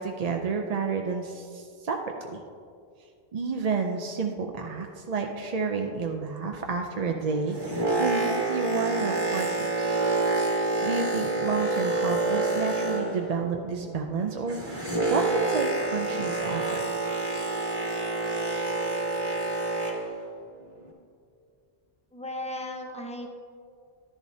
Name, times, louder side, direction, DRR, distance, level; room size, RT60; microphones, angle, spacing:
voice 1, 0.0-2.0 2.3-2.4 3.3-9.5 9.8-10.0 10.8-16.8, right 4 dB, 45° right, 3 dB, 0.5 m, -30 dB
Boat Water vehicle, 7.3-13.4 13.7-20.1 20.8-20.9, right 2 dB, 25° right, 1.5 m, -28 dB
voice 2, 22.1-23.3, left 1 dB, 5° left, 2 dB, 0.8 m, -36 dB
11.0 x 10.5 x 2.7 m, 2.3 s
omnidirectional pair, 1.1 m